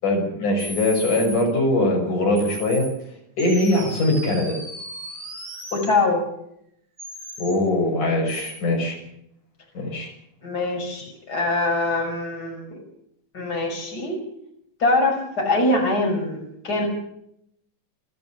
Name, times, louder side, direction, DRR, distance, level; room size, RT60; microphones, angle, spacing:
voice 1, 0.0-2.9 3.4-4.6 7.4-9.0 9.7-10.1, left 1 dB, 70° left, 1 dB, 7.5 m, -21 dB
sound 1, 0.6-1.4 2.4-2.9 3.4-5.9 7.0-7.6 8.3-8.6, right 1 dB, 20° right, 4.9 m, -36 dB
voice 2, 5.7-6.2 10.4-12.8 13.3-14.2 14.8-16.9, left 2 dB, 30° left, 1 dB, 6.3 m, -23 dB
29.0 x 13.5 x 7.2 m, 0.74 s
omnidirectional pair, 3.7 m